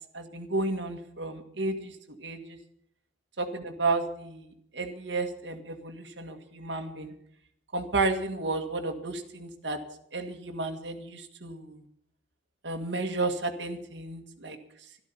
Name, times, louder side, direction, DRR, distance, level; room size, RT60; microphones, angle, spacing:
voice 1, 0.1-2.6 3.4-7.1 7.7-9.8 10.1-11.8 12.6-14.6, right 3 dB, 75° right, 4 dB, 1.8 m, -32 dB
13.0 x 13.0 x 7.1 m, 0.70 s
head